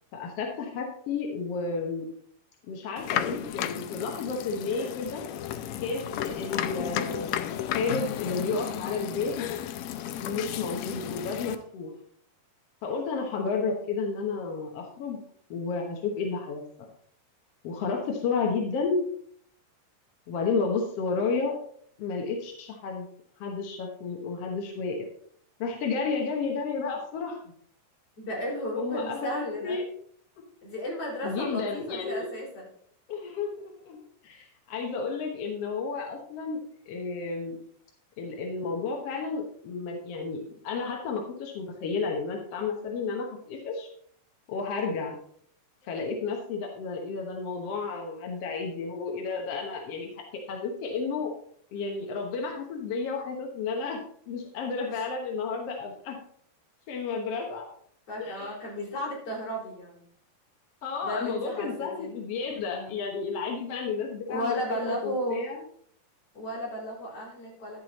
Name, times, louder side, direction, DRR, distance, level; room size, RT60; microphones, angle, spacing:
voice 1, 0.1-2.1 2.7-5.2 5.8-9.5 10.2-11.9 12.8-15.2 15.5-16.6 17.6-19.0 20.3-21.6 22.0-23.1 23.4-25.0 25.6-27.4 28.8-29.8 31.2-32.3 33.1-33.5 33.9-37.6 38.2-43.9 44.5-45.2 45.8-51.3 51.7-54.0 54.3-56.2 56.9-57.6 58.2-58.5 60.8-65.6, left 4 dB, 60° left, 1 dB, 1.7 m, -32 dB
sound 1, 3.0-11.6, left 11 dB, 85° left, 1.5 m, -33 dB
voice 2, 28.2-29.8 30.6-32.7 54.9-55.0 58.1-60.0 61.0-62.1 62.7-63.0 64.3-65.4 66.3-67.8, equal, 45° left, -4 dB, 5.0 m, -34 dB
11.0 x 7.6 x 4.0 m, 0.63 s
omnidirectional pair, 3.9 m